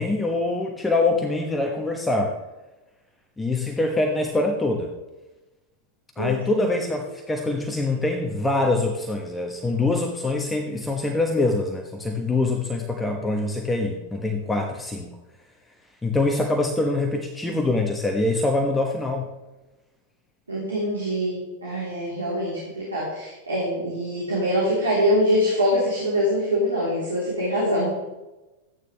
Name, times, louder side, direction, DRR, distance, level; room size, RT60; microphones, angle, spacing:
voice 1, 0.0-2.3 3.4-4.9 6.2-15.1 16.0-19.3, left 2 dB, 10° left, 2 dB, 1.2 m, -24 dB
voice 2, 6.2-6.6 20.5-27.9, equal, 75° right, -6 dB, 3.7 m, -24 dB
13.5 x 9.8 x 3.4 m, 1.1 s
figure-of-eight pair, 90°, 0 cm